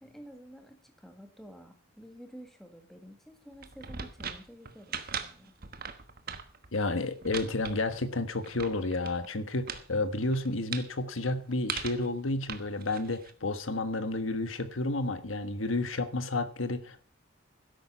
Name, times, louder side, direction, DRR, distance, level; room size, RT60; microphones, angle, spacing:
voice 1, 0.0-5.5, equal, ahead, 4 dB, 1.7 m, -50 dB
sound 1, 3.5-9.3 9.7-9.9 10.2-10.9 11.7-12.1 12.5-13.3, right 7 dB, 50° right, 1.3 m, -40 dB
voice 2, 6.7-17.0, left 2 dB, 85° left, 10 dB, 1.4 m, -31 dB
13.0 x 10.5 x 5.6 m, 0.41 s
head